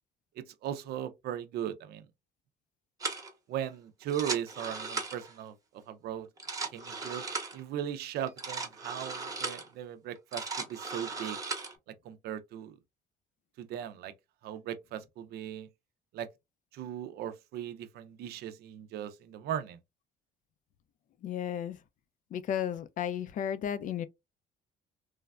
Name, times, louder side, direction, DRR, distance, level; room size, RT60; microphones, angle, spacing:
voice 1, 0.4-2.1 3.5-5.5 5.9-6.3 6.7-7.2 7.5-11.4 11.9-12.8 13.6-14.1 14.4-15.7 16.1-16.3 16.7-19.8, right 10 dB, 70° right, 0.5 m, -38 dB
sound 1, 3.0-3.3 4.0-5.4 6.3-7.6 8.3-9.7 10.2-11.8, right 4 dB, 20° right, 0.8 m, -37 dB
voice 2, 21.2-21.8 22.3-24.1, left 9 dB, 50° left, 0.4 m, -33 dB
3.1 x 2.1 x 2.3 m
cardioid pair, 110°, 17 cm